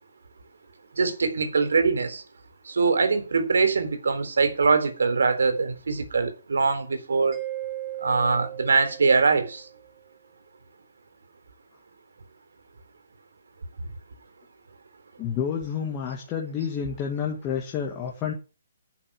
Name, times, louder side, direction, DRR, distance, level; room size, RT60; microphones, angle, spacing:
voice 1, 1.0-2.2 2.7-7.4 8.0-9.6, right 4 dB, 85° right, 3.9 m, -23 dB
Mallet percussion, 7.3-9.9, right 14 dB, 20° right, 2.3 m, -36 dB
voice 2, 15.2-18.3, left 7 dB, 15° left, 1.9 m, -29 dB
11.0 x 6.9 x 8.9 m
hypercardioid pair, 175°, 0 cm